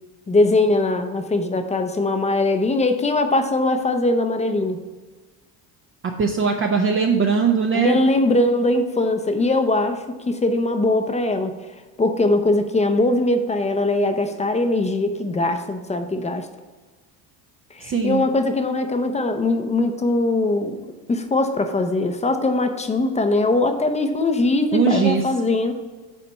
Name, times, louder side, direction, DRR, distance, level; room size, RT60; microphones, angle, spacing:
voice 1, 0.3-4.8 7.8-11.5 12.0-16.5 17.7-20.8 21.1-25.7, left 2 dB, 15° left, 7 dB, 0.6 m, -21 dB
voice 2, 6.2-8.0 17.8-18.2 24.7-25.2, right 5 dB, 30° right, 2 dB, 0.6 m, -20 dB
7.0 x 4.2 x 5.6 m, 1.3 s
supercardioid pair, 105°, 44 cm